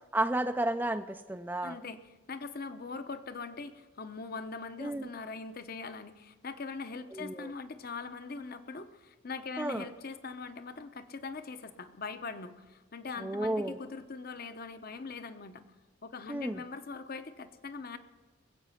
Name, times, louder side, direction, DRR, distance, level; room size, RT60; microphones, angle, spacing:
voice 1, 0.1-1.8 4.8-5.1 7.1-7.5 9.6-9.9 13.2-13.8 16.3-16.6, right 1 dB, 10° right, 7 dB, 0.3 m, -32 dB
voice 2, 1.6-15.6 16.0-18.0, left 4 dB, 45° left, 10 dB, 0.8 m, -42 dB
21.0 x 8.1 x 5.6 m, 1.3 s
head